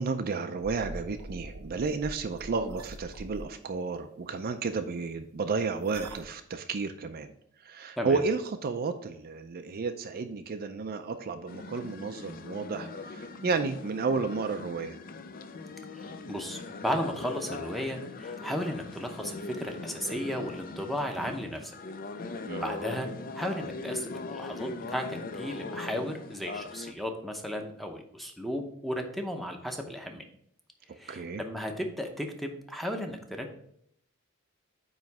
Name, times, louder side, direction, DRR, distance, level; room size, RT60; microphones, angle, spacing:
voice 1, 0.0-7.3 7.6-15.0 22.5-22.7 30.9-31.4, right 4 dB, 45° right, 7 dB, 0.4 m, -32 dB
sound 1, 0.6-3.4 5.8-6.3, right 1 dB, 80° right, 0.8 m, -43 dB
sound 2, 11.5-26.9, left 3 dB, 40° left, 0.4 m, -40 dB
voice 2, 15.9-21.7 22.3-30.2 30.9-33.5, equal, ahead, 3 dB, 0.7 m, -35 dB
9.0 x 3.1 x 4.7 m, 0.70 s
head